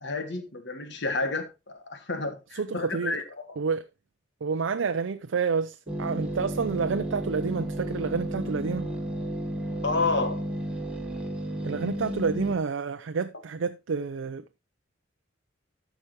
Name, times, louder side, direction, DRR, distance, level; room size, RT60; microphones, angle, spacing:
voice 1, 0.0-3.5 9.8-10.4, left 3 dB, 65° left, 1.6 m, -30 dB
voice 2, 2.5-3.2 3.6-3.8 4.4-8.9 11.6-14.6, right 5 dB, 80° right, 0.5 m, -29 dB
sound 1, 5.9-12.5, equal, 5° right, 1.4 m, -33 dB
13.0 x 6.1 x 3.1 m
head